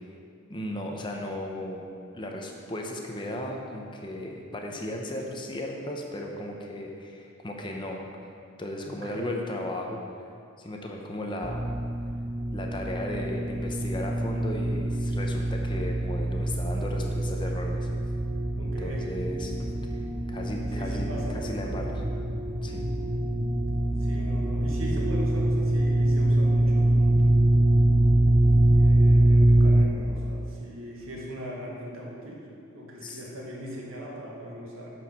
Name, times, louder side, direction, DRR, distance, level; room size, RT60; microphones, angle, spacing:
voice 1, 0.5-1.8 2.1-8.0 8.6-10.0 10.6-11.6 12.5-17.9 18.6-19.5 19.9-20.0 20.3-22.0 22.6-22.8 33.0-33.2, left 1 dB, 25° left, 1 dB, 0.8 m, -35 dB
voice 2, 8.9-9.3 18.6-19.0 20.8-21.4 24.0-27.7 28.7-32.4 32.7-34.9, equal, 80° right, -3 dB, 1.9 m, -39 dB
sound 1, 11.4-29.8, right 1 dB, 15° right, 0.5 m, -24 dB
9.5 x 4.7 x 5.8 m, 2.4 s
head